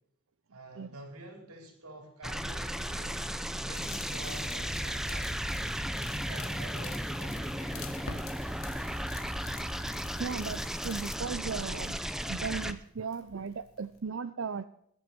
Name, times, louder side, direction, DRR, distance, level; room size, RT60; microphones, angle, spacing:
voice 1, 0.5-3.2 3.6-5.4 6.0-8.0, right 1 dB, 90° right, 3 dB, 4.1 m, -48 dB
sound 1, 2.2-12.7, equal, ahead, 0.6 m, -35 dB
sound 2, 3.7-11.2, left 11 dB, 65° left, 1.3 m, -49 dB
Crackle, 7.3-14.0, left 1 dB, 85° left, 2.9 m, -51 dB
voice 2, 10.2-12.0 12.3-14.7, right 5 dB, 60° right, 12 dB, 0.5 m, -36 dB
21.5 x 8.1 x 4.4 m, 0.71 s
head